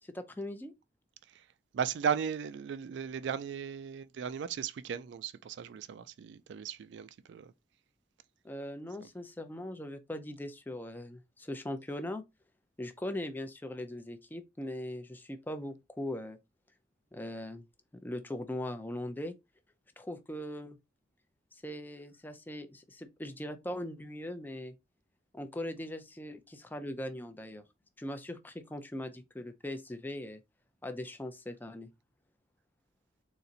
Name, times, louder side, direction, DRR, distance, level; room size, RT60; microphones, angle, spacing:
voice 1, 0.0-0.7 8.4-12.2 12.8-16.4 17.1-17.7 17.9-19.3 20.0-20.8 21.5-24.7 25.3-27.6 28.0-30.4 30.8-31.9, left 1 dB, 10° left, 0.4 m, -40 dB
voice 2, 1.7-7.5 9.0-9.1, right 7 dB, 65° right, 0.3 m, -36 dB
4.1 x 2.5 x 3.9 m
head